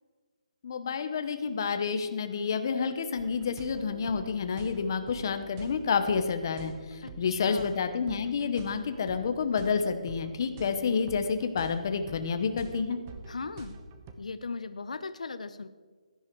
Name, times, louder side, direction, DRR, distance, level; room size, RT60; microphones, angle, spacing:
voice 1, 0.6-13.0, left 5 dB, 35° left, 8 dB, 0.9 m, -29 dB
sound 1, 3.2-14.1, right 4 dB, 20° right, 0.8 m, -47 dB
voice 2, 7.0-7.8 13.3-13.8 14.2-15.7, left 4 dB, 75° left, 12 dB, 0.7 m, -38 dB
16.0 x 10.5 x 4.6 m, 1.5 s
hypercardioid pair, 175°, 4 cm